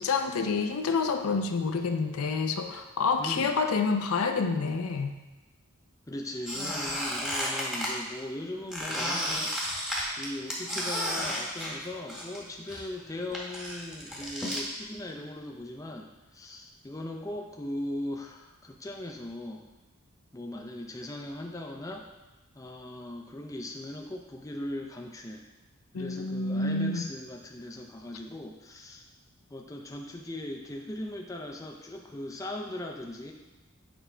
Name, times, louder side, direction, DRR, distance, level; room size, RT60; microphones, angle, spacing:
voice 1, 0.0-5.1 25.9-27.1, left 4 dB, 75° left, 6 dB, 0.5 m, -28 dB
voice 2, 3.2-3.5 6.1-9.8 10.2-19.6 20.3-22.0 22.5-25.4 25.9-29.0 29.5-33.3, left 1 dB, 15° left, 1 dB, 0.5 m, -39 dB
Squeak, 6.4-7.9 8.7-12.4 12.7-14.6, equal, 5° right, 1.0 m, -32 dB
7.0 x 5.0 x 3.3 m, 1.1 s
head